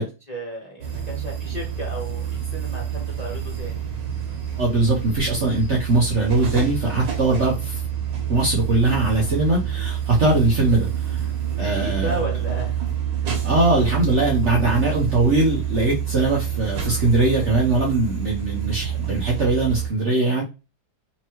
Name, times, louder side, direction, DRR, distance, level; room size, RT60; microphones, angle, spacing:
voice 1, 0.0-3.8 11.6-12.8 13.2-13.3, right 1 dB, 25° left, -3 dB, 1.2 m, -34 dB
sound 1, 0.8-19.9, right 9 dB, 80° right, 1.8 m, -27 dB
voice 2, 4.6-7.8 8.3-11.3 11.6-12.2 13.4-20.4, right 2 dB, 45° right, -3 dB, 1.1 m, -21 dB
4.4 x 3.0 x 3.0 m, 0.28 s
omnidirectional pair, 2.0 m